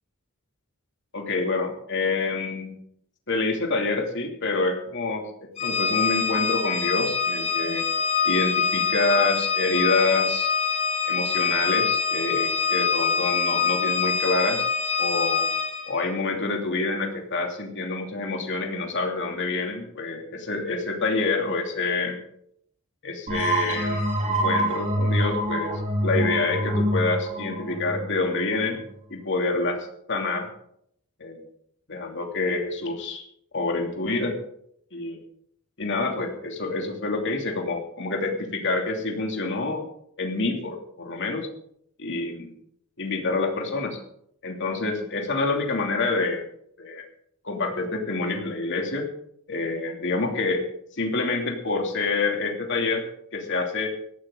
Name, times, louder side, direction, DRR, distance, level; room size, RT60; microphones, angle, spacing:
voice 1, 1.1-2.8 3.3-7.9 8.2-10.5 11.1-14.6 15.0-15.5 15.9-22.2 23.0-25.7 26.0-28.8 29.1-30.5 31.2-31.4 31.9-33.2 33.5-34.4 34.9-35.2 35.8-39.9 40.2-41.5 42.0-42.5 43.0-44.0 44.4-46.4 46.8-47.0 47.4-49.1 49.5-50.7 50.9-53.0 53.3-53.9, left 3 dB, 55° left, 2 dB, 2.8 m, -27 dB
Organ, 5.6-16.0, left 6 dB, 30° left, 2.5 m, -25 dB
sound 1, 23.3-28.7, right 1 dB, 35° right, 4.8 m, -26 dB
18.0 x 14.5 x 3.9 m, 0.70 s
head